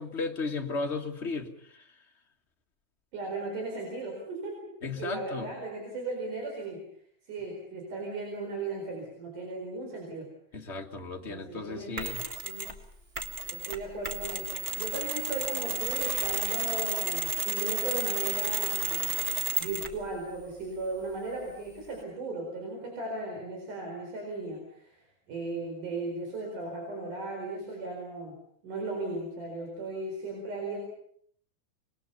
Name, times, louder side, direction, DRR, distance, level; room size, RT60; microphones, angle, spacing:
voice 1, 0.0-1.9 4.8-5.5 10.5-12.2, left 3 dB, 30° left, 3 dB, 1.3 m, -35 dB
voice 2, 3.1-4.7 5.0-6.8 7.2-10.3 11.3-12.1 12.4-12.7 13.5-19.2 19.6-28.3 28.6-30.8, right 2 dB, 85° right, 0 dB, 6.1 m, -37 dB
Mechanisms, 12.0-12.8 13.1-20.0, right 4 dB, 30° right, 1.2 m, -32 dB
25.5 x 21.5 x 6.9 m, 0.65 s
omnidirectional pair, 3.5 m